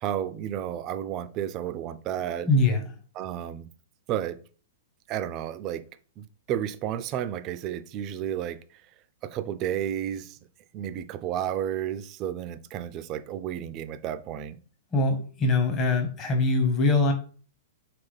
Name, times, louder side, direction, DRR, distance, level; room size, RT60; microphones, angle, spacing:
voice 1, 0.0-2.5 3.2-3.7 4.1-4.4 5.1-5.8 6.2-8.8 9.2-10.4 10.7-14.6, right 10 dB, 35° right, 0.4 m, -32 dB
voice 2, 2.5-2.8 14.9-17.1, left 2 dB, 30° left, 1.0 m, -23 dB
3.8 x 3.4 x 3.2 m
hypercardioid pair, 115°, 0 cm